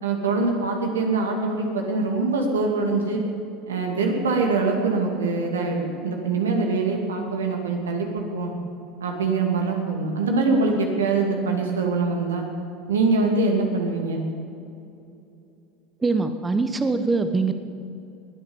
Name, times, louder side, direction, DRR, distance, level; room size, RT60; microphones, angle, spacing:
voice 1, 0.0-3.2 3.6-8.5 9.0-12.4 12.9-14.2, right 3 dB, 85° right, 1 dB, 2.6 m, -23 dB
voice 2, 16.0-17.5, right 3 dB, 20° right, 8 dB, 1.1 m, -23 dB
21.0 x 9.0 x 7.3 m, 2.7 s
hypercardioid pair, 80°, 0 cm